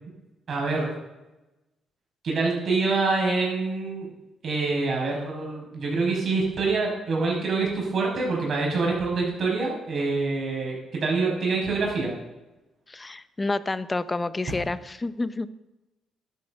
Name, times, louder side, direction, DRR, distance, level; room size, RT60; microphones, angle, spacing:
voice 1, 0.5-0.9 2.2-4.1 4.4-12.1, right 3 dB, 55° right, -1 dB, 5.7 m, -26 dB
voice 2, 12.9-15.5, left 2 dB, 20° left, 14 dB, 0.7 m, -29 dB
11.5 x 9.1 x 6.5 m, 1.0 s
cardioid pair, 90°, 0 cm